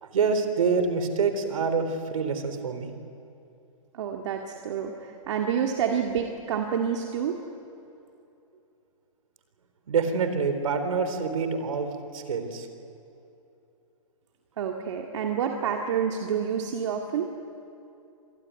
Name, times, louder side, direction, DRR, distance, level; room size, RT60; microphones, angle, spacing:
voice 1, 0.0-2.9 9.9-12.7, right 5 dB, 75° right, 8 dB, 3.8 m, -26 dB
voice 2, 3.9-7.4 14.6-17.3, right 7 dB, 60° right, 2 dB, 2.1 m, -28 dB
26.0 x 20.0 x 9.4 m, 2.7 s
hypercardioid pair, 150°, 17 cm